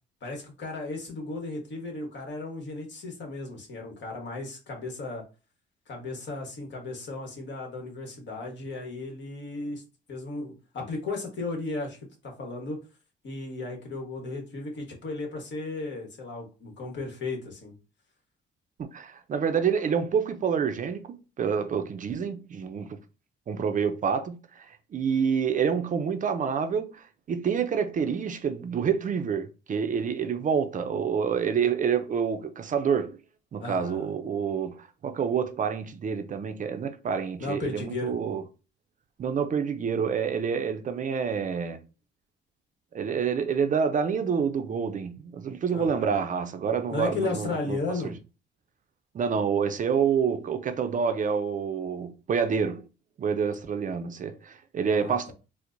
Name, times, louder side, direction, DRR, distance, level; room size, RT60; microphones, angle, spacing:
voice 1, 0.2-5.2 5.9-9.8 10.1-12.0 12.2-12.8 13.2-17.7 33.6-34.1 37.4-38.1 45.7-46.1 46.9-48.2 54.9-55.3, left 3 dB, 65° left, 1.2 m, -35 dB
voice 2, 18.8-23.0 23.5-33.2 33.5-38.5 39.2-41.8 42.9-48.1 49.1-52.8 53.2-55.3, right 6 dB, 40° right, 0.4 m, -28 dB
4.3 x 2.0 x 2.6 m
cardioid pair, 90°, 20 cm